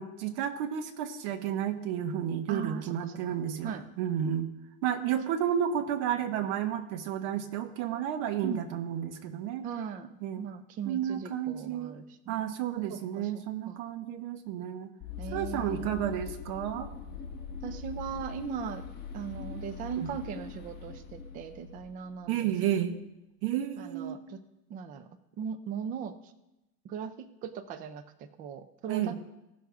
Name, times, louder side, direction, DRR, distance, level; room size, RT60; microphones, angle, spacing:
voice 1, 0.0-4.5 4.8-9.6 10.2-10.4 10.9-11.9 12.3-14.9 15.3-16.9 20.0-20.1 22.3-23.0 23.4-24.2 28.9-29.1, right 10 dB, 50° right, 7 dB, 1.3 m, -32 dB
voice 2, 2.5-3.8 8.4-8.6 9.6-12.3 12.9-13.8 15.2-16.0 17.6-18.9 19.1-22.5 23.8-24.4 24.7-25.1 25.4-26.3 26.8-29.1, right 7 dB, 20° right, 11 dB, 0.4 m, -39 dB
sound 1, 15.0-22.4, left 6 dB, 20° left, 1.4 m, -42 dB
17.0 x 6.3 x 3.5 m, 0.93 s
supercardioid pair, 135°, 47 cm